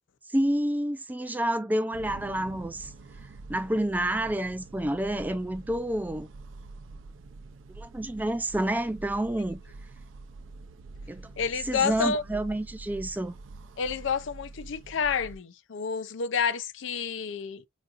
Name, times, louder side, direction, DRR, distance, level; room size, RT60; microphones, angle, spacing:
voice 1, 0.3-2.9 3.5-6.3 7.8-9.6 11.1-11.3 11.6-13.4, right 1 dB, 10° right, 0.3 m, -29 dB
sound 1, 1.9-15.4, right 3 dB, 75° right, 0.5 m, -46 dB
voice 2, 11.4-12.2 13.8-17.6, left 6 dB, 70° left, 0.4 m, -29 dB
4.0 x 2.4 x 2.4 m
head